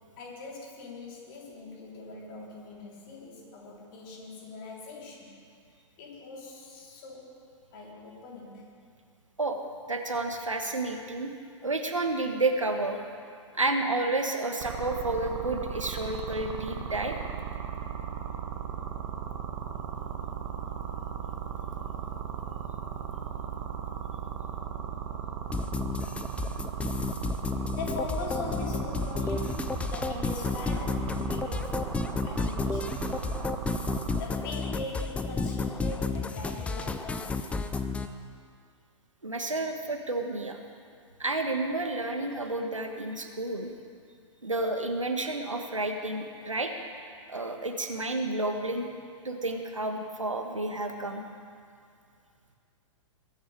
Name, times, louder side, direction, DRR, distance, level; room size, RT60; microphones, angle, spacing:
voice 1, 0.2-5.4 6.0-7.4 7.7-8.8 27.5-32.0 32.2-33.3 33.9-37.7, left 3 dB, 45° left, -2 dB, 3.3 m, -41 dB
voice 2, 9.9-11.3 11.6-13.0 13.5-17.2 39.2-40.6 41.2-43.7 44.4-46.7 47.3-48.9 49.2-51.2, right 2 dB, 85° right, 4 dB, 1.4 m, -30 dB
sound 1, 14.6-34.2, right 9 dB, 45° right, 1.6 m, -36 dB
sound 2, 25.5-38.1, left 4 dB, 10° left, 0.5 m, -31 dB
21.0 x 8.2 x 5.0 m, 2.3 s
figure-of-eight pair, 105°, 16 cm